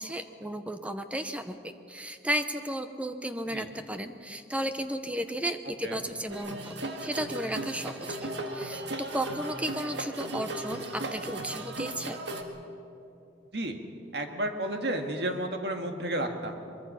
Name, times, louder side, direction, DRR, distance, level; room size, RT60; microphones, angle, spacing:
voice 1, 0.0-12.2, right 1 dB, 5° right, 8 dB, 0.8 m, -34 dB
sound 1, 6.3-12.4, right 1 dB, 80° right, 1.8 m, -36 dB
voice 2, 14.1-16.6, right 1 dB, 65° right, 4 dB, 1.8 m, -32 dB
23.0 x 22.5 x 5.7 m, 2.7 s
head